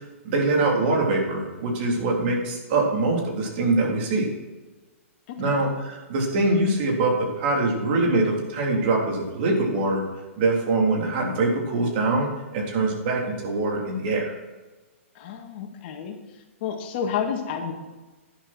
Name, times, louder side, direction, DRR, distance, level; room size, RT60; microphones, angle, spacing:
voice 1, 0.2-4.3 5.4-10.0 10.4-14.3, right 2 dB, 50° right, 0 dB, 3.6 m, -23 dB
voice 2, 5.3-5.6 15.2-16.2 16.6-17.7, left 7 dB, 50° left, 4 dB, 2.0 m, -30 dB
11.0 x 10.5 x 4.4 m, 1.2 s
hypercardioid pair, 130°, 7 cm